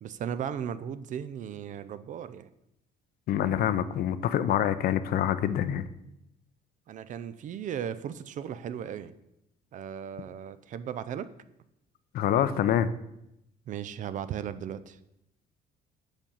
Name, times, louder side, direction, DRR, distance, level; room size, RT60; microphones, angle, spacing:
voice 1, 0.0-2.5 6.9-9.1 9.7-11.3 13.7-15.0, right 9 dB, 50° right, 14 dB, 0.4 m, -36 dB
voice 2, 3.3-5.9 12.1-12.9, left 10 dB, 60° left, 13 dB, 0.5 m, -26 dB
5.1 x 5.1 x 5.4 m, 0.84 s
cardioid pair, 110°, 17 cm